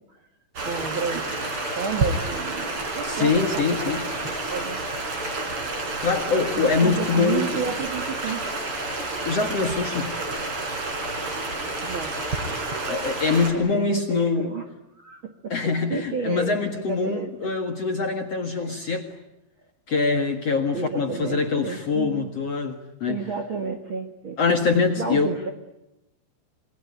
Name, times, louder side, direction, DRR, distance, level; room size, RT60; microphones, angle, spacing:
Stream, 0.5-13.5, right 2 dB, 30° right, 4.3 m, -29 dB
voice 1, 0.6-4.0 4.3-4.8 6.3-8.4 11.8-12.1 13.5-14.7 15.0-17.5 18.6-18.8 20.7-22.3 23.1-24.6 25.0-25.5, right 5 dB, 60° right, 6 dB, 1.3 m, -32 dB
voice 2, 3.0-4.0 6.0-7.5 9.3-10.1 12.9-14.5 15.5-19.1 19.9-23.3 24.4-25.3, left 4 dB, 50° left, 5 dB, 2.0 m, -24 dB
28.0 x 22.5 x 9.5 m, 0.91 s
omnidirectional pair, 5.2 m